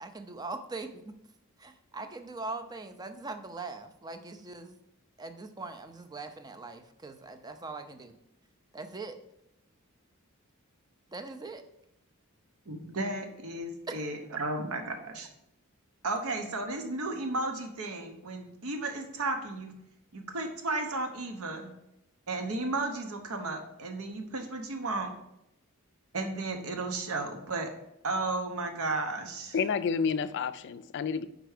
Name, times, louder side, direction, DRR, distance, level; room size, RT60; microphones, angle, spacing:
voice 1, 0.0-1.1 1.6-4.8 5.2-8.1 8.7-9.2 11.1-11.6 13.9-14.1, right 3 dB, 20° right, 8 dB, 0.4 m, -41 dB
voice 2, 12.7-15.3 16.0-19.7 20.1-21.7 22.3-25.1 26.1-27.7 28.0-29.6, right 2 dB, 75° right, 5 dB, 0.9 m, -34 dB
voice 3, 29.5-31.3, left 6 dB, 55° left, 13 dB, 0.3 m, -29 dB
5.0 x 4.5 x 4.9 m, 0.83 s
head